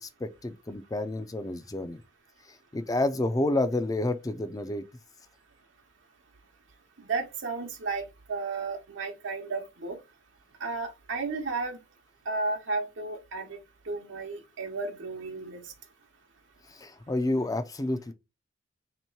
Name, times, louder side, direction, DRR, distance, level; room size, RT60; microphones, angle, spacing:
voice 1, 0.0-2.0 2.7-4.8 16.7-18.1, left 2 dB, 20° left, 0.4 m, -29 dB
voice 2, 7.0-8.0 8.3-10.0 10.6-11.8 12.3-13.6 13.9-15.6, right 3 dB, 85° right, 0.9 m, -33 dB
3.1 x 3.0 x 4.4 m
head